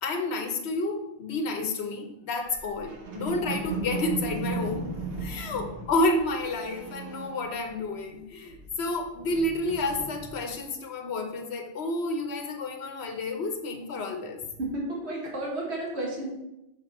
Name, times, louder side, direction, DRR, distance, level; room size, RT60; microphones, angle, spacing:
voice 1, 0.0-14.4, left 2 dB, 80° left, 5 dB, 1.1 m, -30 dB
sound 1, 2.5-8.1 8.3-10.6, right 3 dB, 65° right, 1.2 m, -37 dB
voice 2, 5.4-5.7 14.6-16.3, right 1 dB, 85° right, -3 dB, 1.7 m, -33 dB
6.8 x 3.7 x 4.2 m, 0.89 s
omnidirectional pair, 1.1 m